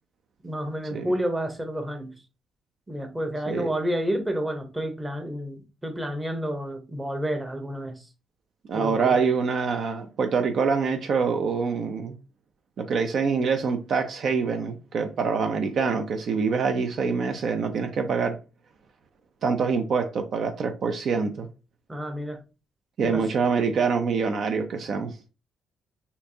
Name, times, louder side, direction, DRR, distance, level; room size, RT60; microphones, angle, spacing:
voice 1, 0.4-2.1 2.9-8.0 8.7-9.2 21.9-22.4 23.0-23.2, equal, 15° right, 0.9 m, -30 dB
voice 2, 8.7-12.2 12.8-18.4 19.4-21.5 23.0-25.3, right 5 dB, 60° right, 0.5 m, -25 dB
4.5 x 2.7 x 2.7 m
cardioid pair, 90°, 0 cm